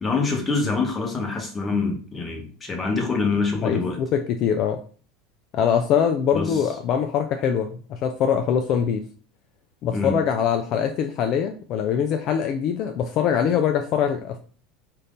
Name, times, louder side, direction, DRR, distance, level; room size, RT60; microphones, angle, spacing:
voice 1, 0.0-4.0 6.3-6.6 9.9-10.1, left 4 dB, 20° left, 2 dB, 1.0 m, -25 dB
voice 2, 3.6-4.8 5.5-9.0 9.8-14.4, left 8 dB, 50° left, 5 dB, 0.3 m, -23 dB
2.6 x 2.5 x 3.5 m, 0.42 s
hypercardioid pair, 90°, 0 cm